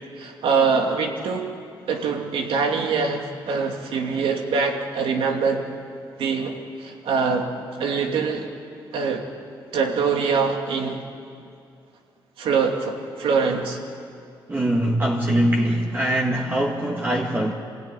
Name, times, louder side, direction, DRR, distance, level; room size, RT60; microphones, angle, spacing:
voice 1, 0.2-1.5 1.9-5.6 6.2-7.5 7.8-8.5 8.9-9.2 9.7-11.0 12.4-13.8, right 5 dB, 85° right, 2 dB, 2.7 m, -23 dB
voice 2, 14.5-17.5, right 1 dB, 20° right, -1 dB, 1.9 m, -22 dB
27.0 x 16.5 x 9.8 m, 2.4 s
cardioid pair, 110°, 9 cm